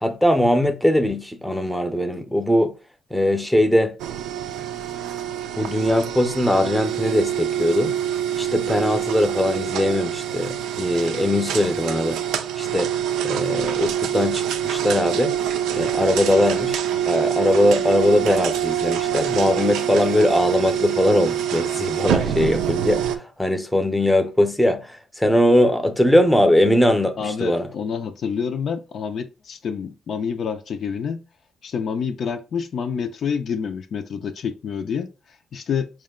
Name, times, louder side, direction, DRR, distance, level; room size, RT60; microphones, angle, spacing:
voice 1, 0.0-2.7 3.1-4.0 5.6-8.0 8.4-12.2 12.6-12.9 13.2-15.4 15.7-27.7, left 1 dB, 5° left, 0.6 m, -20 dB
sound 1, 4.0-23.2, right 10 dB, 85° right, 0.4 m, -25 dB
voice 2, 27.2-31.3 31.6-35.9, left 6 dB, 60° left, 0.4 m, -28 dB
4.5 x 2.2 x 3.6 m
cardioid pair, 90°, 0 cm